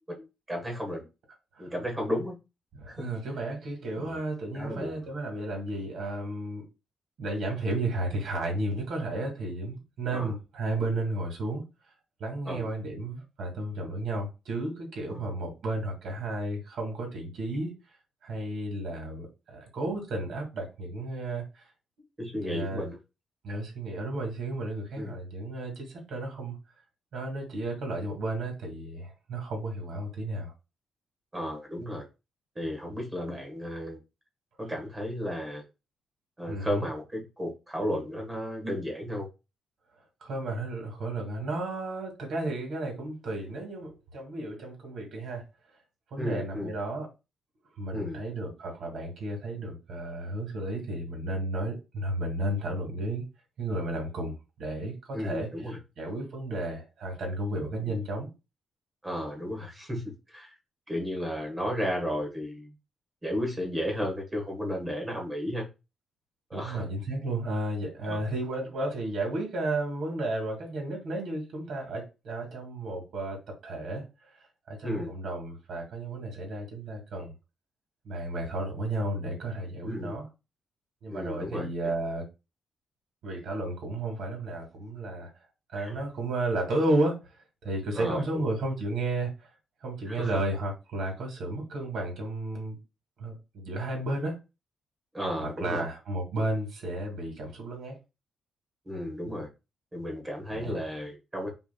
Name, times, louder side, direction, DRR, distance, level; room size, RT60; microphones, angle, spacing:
voice 1, 0.1-1.0 1.6-2.4 2.9-3.1 4.0-4.2 4.5-5.0 10.1-10.3 12.4-12.7 15.1-15.2 22.2-23.0 25.0-25.1 31.3-32.1 32.5-34.0 34.6-35.6 36.4-39.3 46.2-46.7 47.9-48.2 55.1-55.8 57.8-57.9 59.0-60.6 60.9-62.7 63.2-65.7 66.5-66.8 68.1-68.2 74.8-75.1 79.8-80.2 81.1-81.7 85.8-86.0 87.9-88.4 90.1-90.4 95.1-95.8 98.8-99.5 99.9-101.5, equal, 15° right, 1.4 m, -33 dB
voice 2, 2.7-6.7 7.2-11.6 12.2-17.7 18.2-21.7 22.4-22.9 23.4-26.6 27.1-30.5 36.5-36.9 40.2-45.4 46.1-47.1 47.8-53.2 53.6-58.3 66.5-77.3 78.0-80.3 81.0-82.2 83.2-85.3 85.7-89.5 89.8-92.8 93.2-94.4 95.4-98.0 100.5-100.8, right 2 dB, 65° right, 2.2 m, -33 dB
6.2 x 3.5 x 2.3 m
cardioid pair, 170°, 0 cm